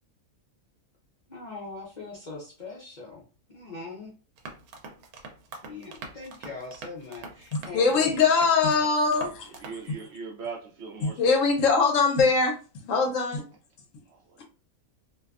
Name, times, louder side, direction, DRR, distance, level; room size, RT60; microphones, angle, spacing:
voice 1, 1.3-3.2 3.5-4.1 5.6-8.2, left 3 dB, 50° left, 0.6 m, -41 dB
sound 1, 4.4-9.9, right 3 dB, 90° right, 1.1 m, -44 dB
voice 2, 7.5-9.5 11.0-13.4, left 4 dB, 70° left, 1.0 m, -22 dB
voice 3, 9.6-11.4 14.1-14.4, right 5 dB, 65° right, 0.7 m, -40 dB
2.6 x 2.2 x 2.3 m
omnidirectional pair, 1.5 m